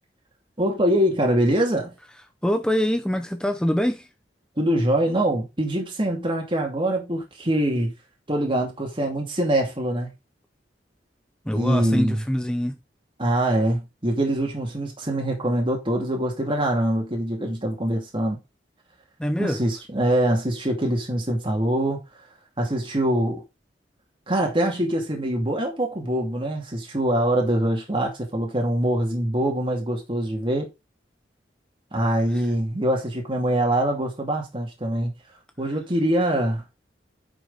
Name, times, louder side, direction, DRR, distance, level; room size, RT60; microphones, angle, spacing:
voice 1, 0.6-1.9 4.6-7.9 8.3-10.1 11.5-12.2 13.2-18.4 19.4-22.0 22.6-23.4 24.3-30.7 31.9-35.1 35.6-36.6, right 1 dB, 30° right, 2.5 m, -24 dB
voice 2, 2.4-4.1 11.5-12.8 19.2-19.6, equal, 5° left, 0.7 m, -24 dB
9.1 x 6.3 x 4.0 m
head